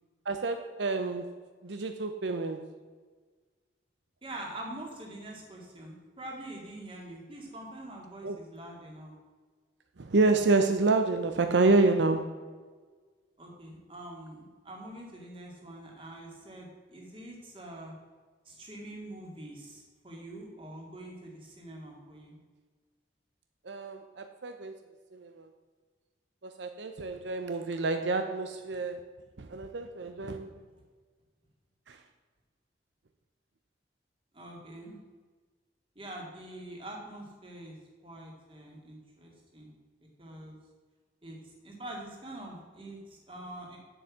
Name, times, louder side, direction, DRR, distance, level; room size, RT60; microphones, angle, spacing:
voice 1, 0.3-1.3 1.6-2.7 8.2-8.4 10.0-12.4 23.7-24.7 25.1-25.5 26.4-29.0 29.4-30.6 31.9-32.0, right 3 dB, 75° right, 7 dB, 0.7 m, -28 dB
voice 2, 4.2-9.1 13.4-17.9 18.5-22.4 34.3-35.0 36.0-37.8 38.0-39.7 40.2-40.6 41.2-43.8, right 1 dB, 30° right, -1 dB, 2.3 m, -45 dB
8.0 x 7.0 x 7.3 m, 1.4 s
head